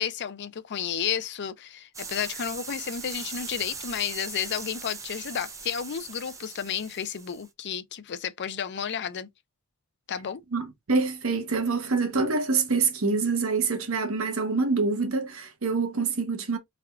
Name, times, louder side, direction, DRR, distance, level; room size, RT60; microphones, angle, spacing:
voice 1, 0.0-9.3 10.1-10.4, left 8 dB, 55° left, 0.5 m, -32 dB
sound 1, 1.9-7.5, right 4 dB, 15° right, 0.5 m, -40 dB
voice 2, 10.5-16.6, right 4 dB, 70° right, 1.0 m, -26 dB
3.4 x 2.3 x 3.4 m
head